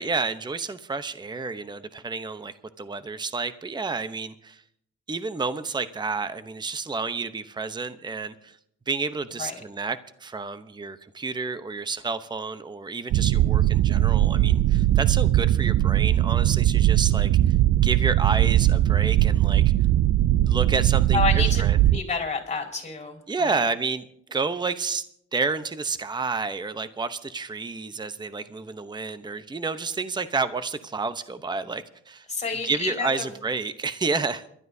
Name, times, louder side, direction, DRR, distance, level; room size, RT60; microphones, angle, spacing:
voice 1, 0.0-4.6 5.1-8.6 8.9-17.5 17.8-19.6 20.5-21.8 23.3-24.0 24.3-25.0 25.3-32.3 32.6-34.4, right 4 dB, 15° right, 12 dB, 0.8 m, -30 dB
sound 1, 13.1-22.0, right 14 dB, 60° right, 0.4 m, -20 dB
voice 2, 21.1-21.6 21.9-23.7 32.3-33.3, left 4 dB, 20° left, 2 dB, 4.8 m, -29 dB
28.0 x 12.5 x 2.7 m, 0.70 s
cardioid pair, 90°, 30 cm